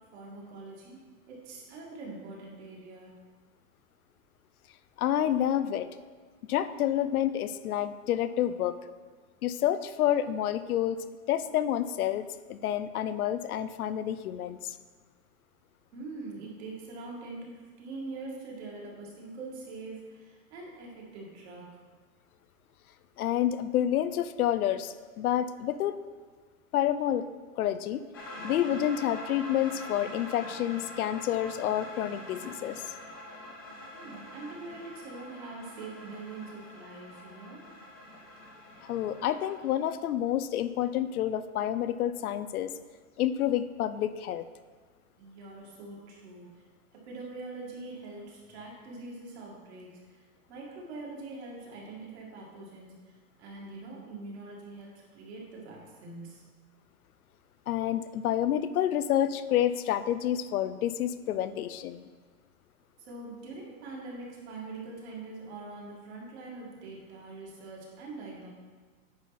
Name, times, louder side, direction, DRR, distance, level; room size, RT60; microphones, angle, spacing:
voice 1, 0.1-1.0 1.3-3.1 15.9-21.8 33.9-37.7 45.2-46.6 46.9-50.2 50.5-53.1 53.4-56.5 63.0-68.5, right 3 dB, 45° right, -3 dB, 2.4 m, -43 dB
voice 2, 5.0-5.9 6.5-8.7 9.4-11.0 11.3-14.7 23.2-26.0 26.7-27.2 27.6-28.0 28.4-32.8 38.8-42.7 43.2-44.4 57.7-62.1, left 11 dB, 75° left, 13 dB, 0.6 m, -29 dB
sound 1, 28.1-39.5, left 1 dB, 15° left, 0.4 m, -44 dB
9.7 x 5.6 x 4.2 m, 1.5 s
supercardioid pair, 170°, 44 cm